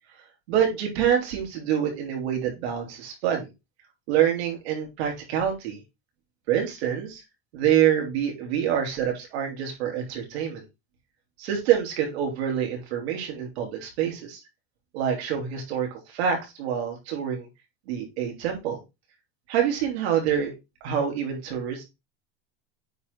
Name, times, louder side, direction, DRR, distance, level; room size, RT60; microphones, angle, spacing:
voice 1, 0.5-3.5 4.1-5.8 6.5-7.2 7.5-10.6 11.4-14.4 14.9-17.5 17.9-18.8 19.5-20.5 20.8-21.9, right 9 dB, 90° right, 1 dB, 3.5 m, -26 dB
9.2 x 4.0 x 4.0 m, 0.24 s
supercardioid pair, 150°, 31 cm